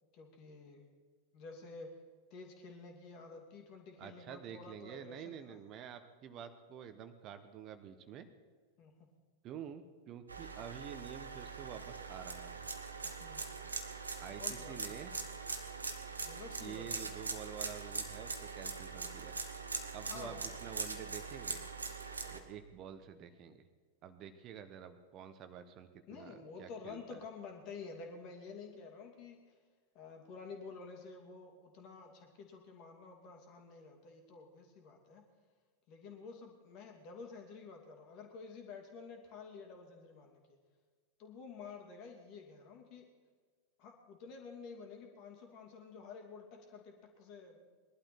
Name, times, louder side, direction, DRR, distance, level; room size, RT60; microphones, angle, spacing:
voice 1, 0.1-0.8 1.3-1.9 2.3-5.6 8.8-9.1 13.0-13.5 14.4-14.9 16.2-17.0 20.0-20.4 22.2-22.5 26.1-29.4 29.9-35.2 35.9-40.6 41.2-43.1 43.8-47.7, left 4 dB, 40° left, 3 dB, 2.5 m, -50 dB
voice 2, 4.0-8.3 9.4-12.7 14.2-15.1 16.6-19.4 19.9-21.6 22.3-23.6 24.0-27.2, right 8 dB, 35° right, 10 dB, 0.9 m, -49 dB
sound 1, 10.3-22.4, right 4 dB, 80° right, 1.2 m, -42 dB
20.0 x 12.0 x 4.4 m, 1.5 s
figure-of-eight pair, 90°, 0 cm